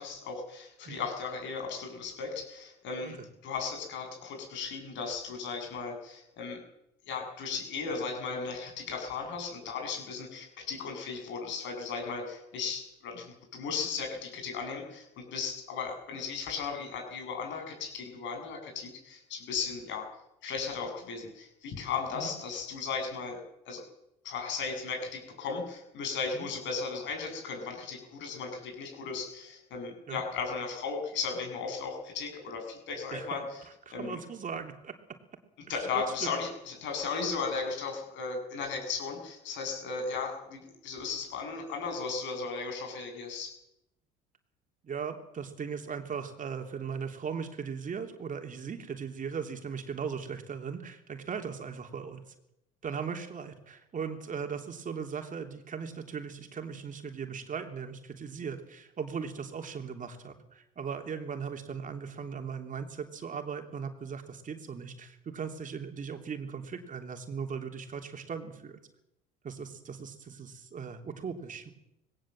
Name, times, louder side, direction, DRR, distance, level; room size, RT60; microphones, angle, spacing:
voice 1, 0.0-6.6 7.1-20.1 20.4-23.8 24.2-33.6 33.9-34.2 35.7-43.5, left 5 dB, 65° left, 3 dB, 7.8 m, -36 dB
voice 2, 33.1-33.5 33.9-35.0 35.7-35.8 36.2-36.3 44.8-52.2 52.8-68.8 69.4-71.7, right 6 dB, 40° right, 5 dB, 3.2 m, -38 dB
20.0 x 17.5 x 7.7 m, 0.85 s
hypercardioid pair, 70°, 20 cm